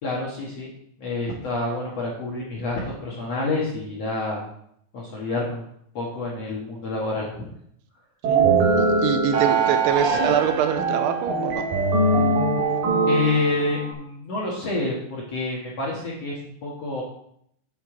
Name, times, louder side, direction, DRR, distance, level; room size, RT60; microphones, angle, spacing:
voice 1, 0.0-0.7 1.0-4.4 4.9-5.7 5.9-7.5 13.1-17.0, left 2 dB, 55° left, -5 dB, 2.0 m, -28 dB
sound 1, 8.2-13.9, right 3 dB, 60° right, 3.5 m, -22 dB
voice 2, 8.8-11.7, right 9 dB, 85° right, 8 dB, 2.8 m, -24 dB
8.3 x 8.0 x 3.8 m, 0.70 s
omnidirectional pair, 4.7 m